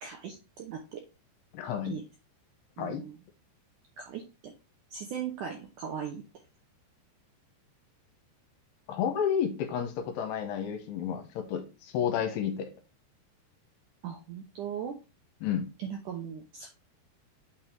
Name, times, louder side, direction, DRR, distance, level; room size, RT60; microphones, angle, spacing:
voice 1, 0.0-1.0 1.8-2.0 2.8-3.2 4.0-4.5 4.9-6.2 14.0-15.0 15.8-16.7, right 8 dB, 75° right, 1.9 m, -38 dB
voice 2, 1.5-2.0 2.8-3.1 8.9-12.7 15.4-15.7, left 8 dB, 80° left, 2.9 m, -31 dB
8.5 x 4.1 x 4.4 m
omnidirectional pair, 5.0 m